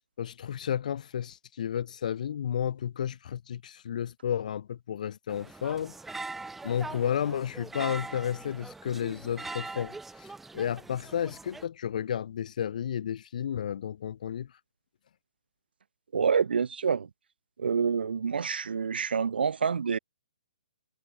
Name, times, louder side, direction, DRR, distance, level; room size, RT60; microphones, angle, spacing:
voice 1, 0.2-5.9 6.6-14.5, left 9 dB, 50° left, 1.6 m, -32 dB
sound 1, 5.3-11.6, right 3 dB, 5° right, 1.6 m, -42 dB
voice 2, 16.1-17.1 17.6-20.0, right 6 dB, 85° right, 0.4 m, -27 dB
hypercardioid pair, 160°, 5 cm